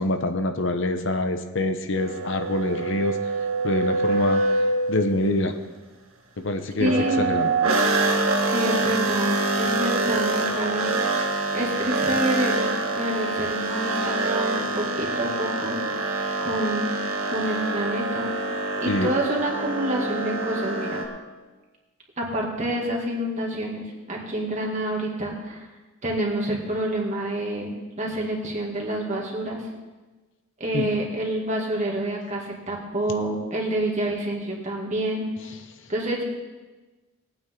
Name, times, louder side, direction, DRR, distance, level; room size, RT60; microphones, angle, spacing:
voice 1, 0.0-3.2 3.6-4.4 4.9-5.6 6.4-7.5 18.9-19.1 30.7-30.9, left 1 dB, 60° left, 7 dB, 0.9 m, -25 dB
sound 1, 2.0-5.3 6.9-21.0, right 2 dB, 85° right, 1.7 m, -25 dB
voice 2, 6.8-7.3 8.4-10.9 11.5-15.8 16.4-17.0 17.3-18.3 18.8-21.0 22.2-25.7 26.0-27.7 28.0-29.7 30.6-35.3 35.9-36.2, right 1 dB, 35° right, -1 dB, 2.3 m, -28 dB
19.5 x 8.9 x 3.8 m, 1.2 s
head